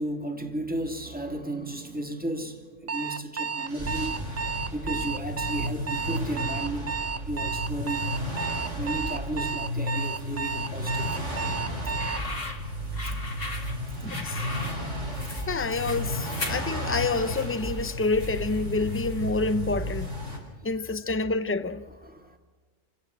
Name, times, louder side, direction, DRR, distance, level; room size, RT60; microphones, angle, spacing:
voice 1, 0.0-4.2 4.7-8.1 8.7-11.9 13.1-13.2 20.5-20.6 22.0-22.4, right 1 dB, 5° right, 2.7 m, -34 dB
Alarm, 2.9-12.3, right 5 dB, 35° right, 0.9 m, -32 dB
sound 1, 3.7-20.4, equal, 90° right, 6.6 m, -33 dB
sound 2, 11.8-19.3, left 2 dB, 50° left, 2.4 m, -39 dB
voice 2, 14.0-14.4 15.5-20.1 20.6-21.8, left 3 dB, 10° left, 0.8 m, -28 dB
28.0 x 17.0 x 7.6 m
omnidirectional pair, 1.2 m